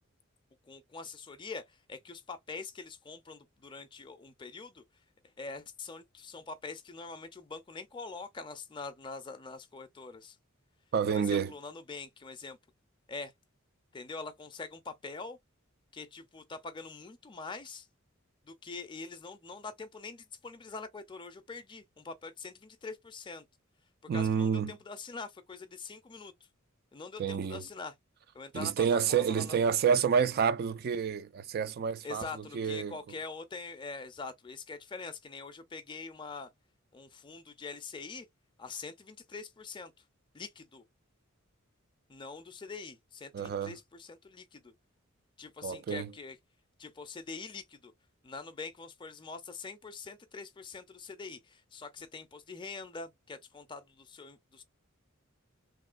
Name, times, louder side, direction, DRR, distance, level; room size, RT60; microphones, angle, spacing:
voice 1, 0.6-4.8 5.4-10.4 11.1-12.6 13.1-13.3 13.9-15.4 15.9-17.9 18.4-23.4 24.1-26.3 26.9-27.9 28.3-29.6 32.0-36.5 36.9-38.3 38.6-39.9 40.3-40.8 42.1-44.7 45.4-46.4 46.8-47.9 48.2-54.6, left 4 dB, 25° left, 0.4 m, -44 dB
voice 2, 10.9-11.5 24.1-24.7 27.2-27.6 28.5-33.0 43.3-43.8 45.6-46.1, right 7 dB, 50° right, 0.3 m, -29 dB
3.1 x 2.7 x 2.4 m
head